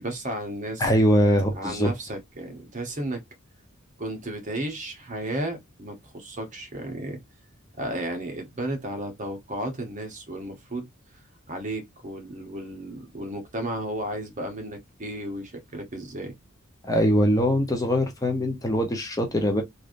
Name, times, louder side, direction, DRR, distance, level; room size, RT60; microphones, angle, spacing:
voice 1, 0.0-0.9 1.5-3.2 4.0-7.2 7.7-10.9 11.5-16.3, right 1 dB, 35° right, 0.9 m, -33 dB
voice 2, 0.8-1.9 16.8-19.6, equal, 15° left, 0.7 m, -22 dB
3.2 x 2.5 x 2.5 m
head